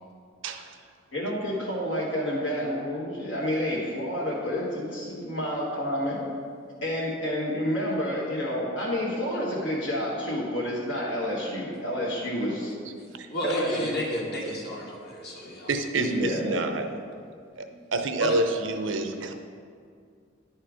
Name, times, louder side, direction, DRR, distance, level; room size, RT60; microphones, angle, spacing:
voice 1, 0.4-0.8 13.2-13.3 15.7-16.9 17.6-17.7 17.9-19.3, right 2 dB, 70° right, 6 dB, 0.7 m, -28 dB
voice 2, 1.1-6.2 6.8-12.7 13.4-13.9 16.0-16.6, equal, 70° left, -7 dB, 1.5 m, -29 dB
voice 3, 13.3-15.7 18.2-18.4, equal, 55° left, -3 dB, 1.6 m, -31 dB
10.5 x 4.4 x 4.9 m, 2.2 s
head